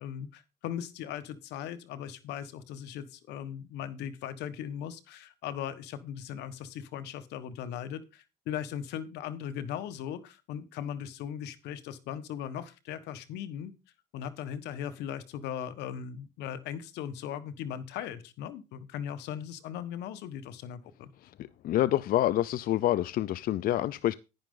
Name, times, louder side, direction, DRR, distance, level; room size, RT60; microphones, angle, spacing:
voice 1, 0.0-13.7 14.1-21.1, left 9 dB, 85° left, 1.3 m, -38 dB
voice 2, 21.6-24.2, left 13 dB, 60° left, 0.5 m, -27 dB
10.5 x 10.5 x 3.8 m
cardioid pair, 110°, 17 cm